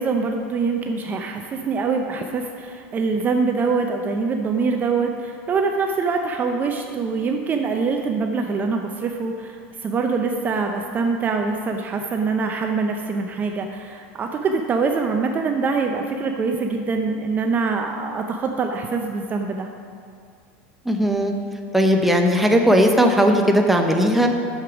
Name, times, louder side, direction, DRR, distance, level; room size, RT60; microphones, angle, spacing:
voice 1, 0.0-19.7, right 4 dB, 30° right, 3 dB, 0.6 m, -24 dB
voice 2, 20.9-21.3 21.7-24.3, equal, 5° right, 2 dB, 0.9 m, -17 dB
8.1 x 6.9 x 6.0 m, 2.3 s
supercardioid pair, 120°, 6 cm